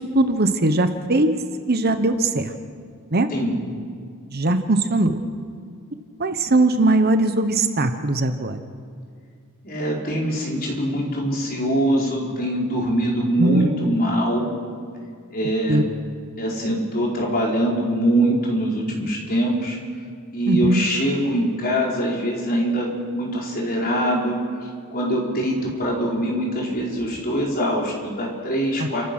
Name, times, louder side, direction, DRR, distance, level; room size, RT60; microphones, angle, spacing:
voice 1, 0.1-1.3 1.7-2.5 3.1-3.3 4.3-5.1 6.2-8.6 13.4-13.7 15.7-15.8 20.5-20.8 28.8-28.9, right 2 dB, 45° right, 8 dB, 1.1 m, -20 dB
voice 2, 9.6-14.5 15.3-15.8 16.4-19.8 20.3-22.9 23.1-24.6 24.9-29.0, right 1 dB, 40° left, -2 dB, 4.7 m, -23 dB
29.0 x 15.5 x 6.2 m, 2.2 s
head